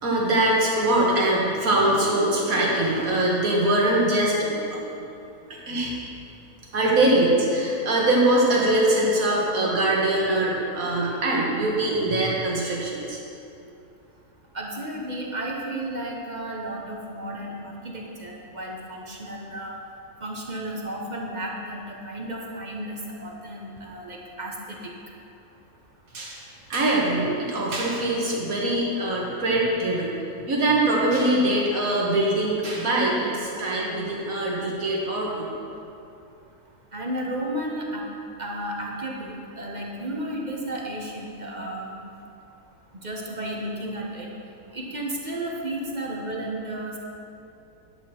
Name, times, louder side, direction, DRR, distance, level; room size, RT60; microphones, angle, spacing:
voice 1, 0.0-5.1 5.5-5.9 6.7-13.2 26.1-26.4 26.7-30.2 30.5-35.5, right 1 dB, 65° right, -4 dB, 2.2 m, -23 dB
voice 2, 14.5-19.8 20.2-24.8 36.9-38.1 38.4-42.0 43.0-44.3 44.7-47.0, right 1 dB, 30° right, -2 dB, 1.1 m, -33 dB
11.0 x 8.4 x 4.4 m, 2.7 s
omnidirectional pair, 1.6 m